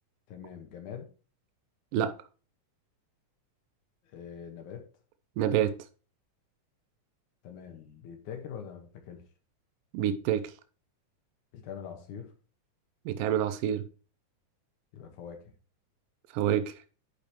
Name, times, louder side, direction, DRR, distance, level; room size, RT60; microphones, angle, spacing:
voice 1, 0.3-1.1 4.0-4.8 7.4-9.2 11.5-12.3 14.9-15.4, left 7 dB, 70° left, 2.7 m, -43 dB
voice 2, 5.4-5.7 9.9-10.5 13.1-13.8 16.3-16.7, right 10 dB, 90° right, 2.3 m, -27 dB
10.5 x 4.8 x 3.0 m
omnidirectional pair, 3.8 m